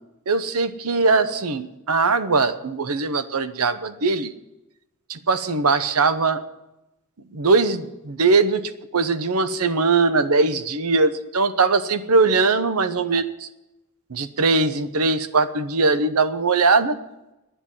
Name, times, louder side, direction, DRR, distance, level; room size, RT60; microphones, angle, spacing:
voice 1, 0.3-4.3 5.1-6.4 7.3-8.6 8.9-13.2 14.1-17.0, right 3 dB, 75° right, 12 dB, 0.9 m, -20 dB
10.0 x 9.1 x 9.9 m, 0.95 s
head